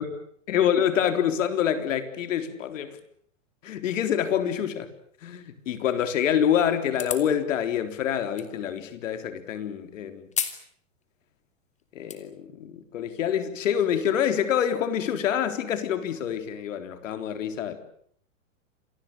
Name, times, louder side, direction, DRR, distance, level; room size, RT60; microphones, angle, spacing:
voice 1, 0.5-3.0 3.6-4.9 5.2-10.3 11.9-17.8, left 9 dB, 75° left, 3.9 m, -26 dB
sound 1, 6.9-7.3 8.4-8.5 10.3-10.6 11.0-11.1 11.8-12.2, left 7 dB, 20° left, 3.1 m, -31 dB
27.5 x 19.5 x 8.9 m
hypercardioid pair, 130°, 39 cm